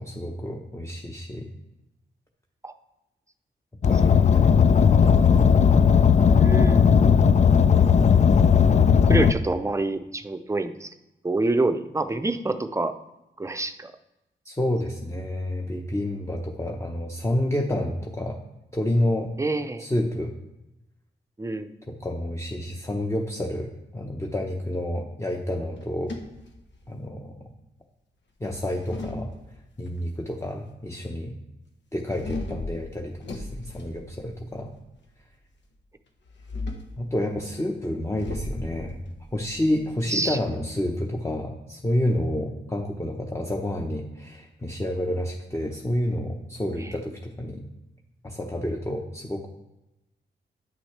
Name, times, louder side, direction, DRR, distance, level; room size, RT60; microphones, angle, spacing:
voice 1, 0.0-1.5 3.8-5.4 14.4-18.4 18.7-19.3 19.8-20.3 22.0-26.1 26.9-27.5 28.4-29.3 29.8-31.4 31.9-34.7 37.0-39.0 39.3-47.7 48.2-49.5, left 1 dB, 15° left, 0 dB, 1.0 m, -29 dB
Car, 3.8-9.3, left 6 dB, 35° left, 0.4 m, -17 dB
voice 2, 6.4-7.4 8.8-10.9 11.2-12.9 13.4-13.9 19.4-19.9 21.4-21.7 40.1-40.4 46.8-46.9, right 2 dB, 15° right, 9 dB, 0.6 m, -27 dB
sound 1, 25.8-27.2 28.5-29.9 32.1-34.7 36.3-37.0 38.2-40.5, left 2 dB, 65° left, 1.3 m, -37 dB
10.5 x 6.0 x 3.3 m, 0.95 s
cardioid pair, 70°, 20 cm